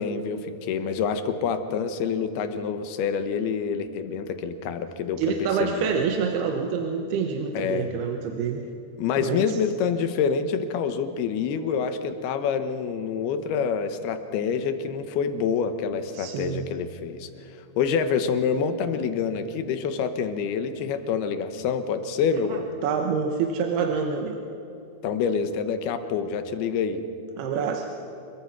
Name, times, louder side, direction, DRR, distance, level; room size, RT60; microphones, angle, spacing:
voice 1, 0.0-5.9 7.5-7.9 9.0-17.3 17.8-22.7 25.0-27.1, left 6 dB, 85° left, 9 dB, 3.2 m, -27 dB
voice 2, 5.2-8.6 9.2-9.6 16.1-16.7 22.5-24.4 27.4-27.9, right 6 dB, 85° right, 3 dB, 3.2 m, -27 dB
27.0 x 22.5 x 6.0 m, 3.0 s
omnidirectional pair, 4.4 m